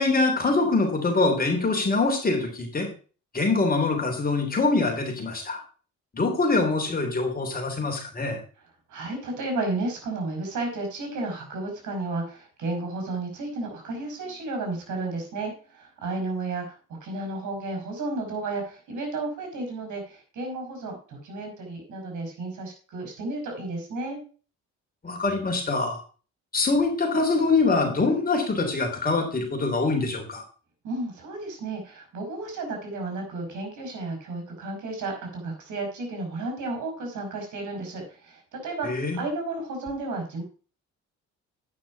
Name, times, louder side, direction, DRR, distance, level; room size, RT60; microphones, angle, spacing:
voice 1, 0.0-2.9 3.3-5.6 6.1-8.4 25.0-26.0 26.5-30.4 38.8-39.2, left 3 dB, 30° left, 3 dB, 3.4 m, -24 dB
voice 2, 8.9-24.2 30.8-40.4, right 2 dB, 75° right, 3 dB, 4.8 m, -33 dB
9.4 x 5.9 x 5.7 m, 0.38 s
cardioid pair, 90°, 30 cm